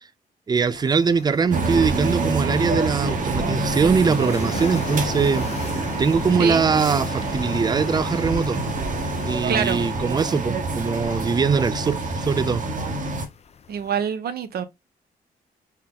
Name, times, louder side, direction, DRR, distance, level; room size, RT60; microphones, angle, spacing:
voice 1, 0.5-5.5 6.0-8.6 9.2-12.6, right 5 dB, 25° right, 0.4 m, -22 dB
sound 1, 0.6-14.0, left 6 dB, 40° left, 0.5 m, -40 dB
sound 2, 1.5-13.3, right 3 dB, 55° right, 1.1 m, -26 dB
sound 3, 4.3-10.6, left 6 dB, 70° left, 0.9 m, -42 dB
voice 2, 9.5-9.9 13.7-14.6, right 7 dB, 70° right, 0.8 m, -25 dB
4.4 x 2.1 x 3.7 m
cardioid pair, 75°, 16 cm